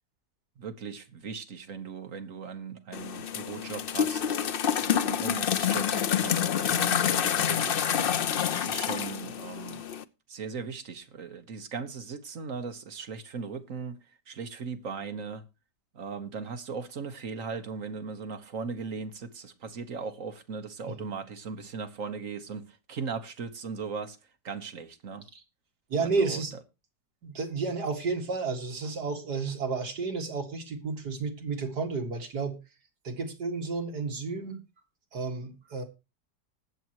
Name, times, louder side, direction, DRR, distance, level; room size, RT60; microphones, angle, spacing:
voice 1, 0.6-4.4 4.8-7.9 8.5-9.9 10.3-14.0 14.3-15.4 15.9-24.2 24.4-25.2 26.0-26.4, right 5 dB, 50° right, 1.6 m, -38 dB
sound 1, 2.9-10.0, left 8 dB, 75° left, 0.5 m, -28 dB
voice 2, 25.9-26.5 27.2-32.6 33.0-34.6 35.1-35.8, right 4 dB, 70° right, 2.6 m, -31 dB
19.5 x 7.7 x 3.0 m
omnidirectional pair, 1.8 m